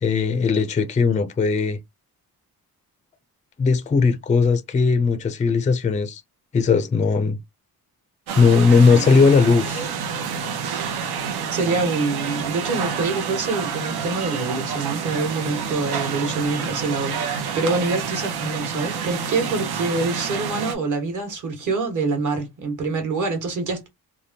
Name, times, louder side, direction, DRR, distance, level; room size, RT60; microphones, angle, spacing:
voice 1, 0.0-1.8 3.6-6.2 6.5-7.4 8.4-9.8, left 5 dB, 20° left, 0.4 m, -18 dB
sound 1, 8.3-20.8, right 6 dB, 80° right, 0.8 m, -28 dB
voice 2, 11.5-23.9, right 3 dB, 50° right, 1.3 m, -25 dB
3.4 x 2.2 x 2.7 m
wide cardioid pair, 145°, 37 cm